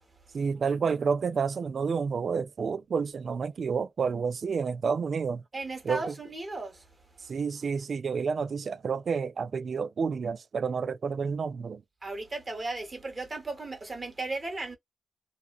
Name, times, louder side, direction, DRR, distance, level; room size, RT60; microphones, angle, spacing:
voice 1, 0.3-5.4 5.8-6.2 7.2-11.8, right 5 dB, 65° right, 0.3 m, -30 dB
voice 2, 5.5-6.8 12.0-14.8, right 2 dB, 35° right, 1.5 m, -35 dB
2.8 x 2.2 x 2.4 m
cardioid pair, 50°, 0 cm